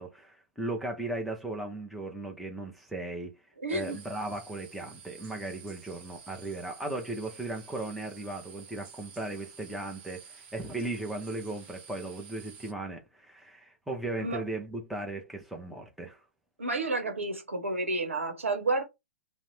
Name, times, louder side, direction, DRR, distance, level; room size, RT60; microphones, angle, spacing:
voice 1, 0.0-3.4 3.7-16.2, right 2 dB, ahead, 0.6 m, -37 dB
voice 2, 3.6-4.0 14.2-14.4 16.6-18.8, right 2 dB, 80° right, 0.9 m, -30 dB
sound 1, 3.7-12.7, right 6 dB, 45° right, 0.8 m, -51 dB
2.6 x 2.0 x 3.2 m
figure-of-eight pair, 115°, 7 cm